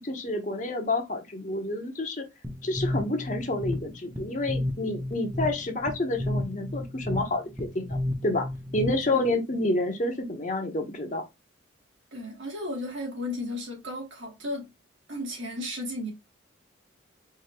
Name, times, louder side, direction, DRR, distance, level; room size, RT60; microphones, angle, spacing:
voice 1, 0.0-2.2 2.6-8.0 8.2-8.5 8.7-11.2, left 2 dB, 40° left, 0.9 m, -29 dB
sound 1, 2.4-9.3, left 1 dB, 10° right, 0.8 m, -33 dB
voice 2, 12.1-14.7 15.1-16.1, left 1 dB, 75° right, 2.2 m, -34 dB
4.8 x 2.8 x 2.8 m
head